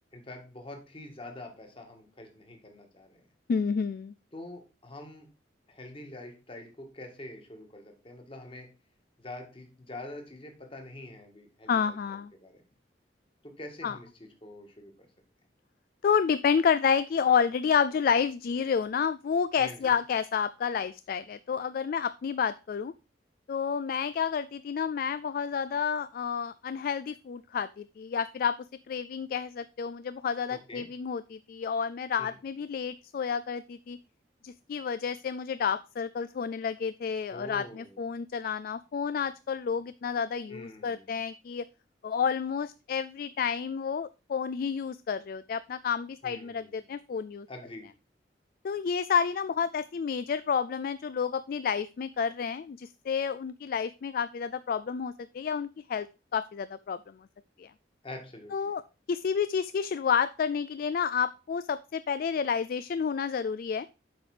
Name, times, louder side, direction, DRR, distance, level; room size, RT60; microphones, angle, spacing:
voice 1, 0.1-3.2 4.3-5.3 5.7-8.7 9.2-12.6 13.4-14.9 19.6-19.9 30.5-30.9 32.2-32.3 37.3-38.0 40.5-41.2 46.2-46.8 47.5-47.9 58.0-58.8, left 1 dB, 30° left, 4 dB, 1.8 m, -45 dB
voice 2, 3.5-4.1 11.7-12.3 13.8-13.9 16.0-22.9 23.5-28.6 28.9-34.0 34.4-41.6 42.0-47.5 48.6-56.1 56.3-57.2 57.6-57.7 58.5-58.8 59.1-63.9, left 6 dB, 50° left, 15 dB, 0.3 m, -30 dB
7.9 x 5.1 x 4.9 m, 0.31 s
head